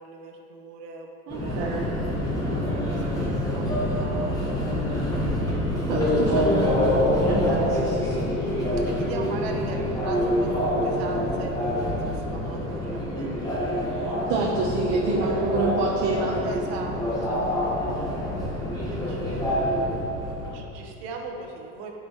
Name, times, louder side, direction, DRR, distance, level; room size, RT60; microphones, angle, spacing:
voice 1, 0.0-5.3 8.9-14.5 15.2-15.4 16.4-21.9, right 3 dB, 60° right, 2 dB, 1.1 m, -40 dB
Subway metro underground, 1.3-20.5, left 1 dB, 10° left, 1.1 m, -26 dB
voice 2, 1.3-1.9 5.9-8.3 14.3-16.4, right 3 dB, 40° right, -3 dB, 0.8 m, -28 dB
11.0 x 5.3 x 3.0 m, 2.9 s
supercardioid pair, 160°, 37 cm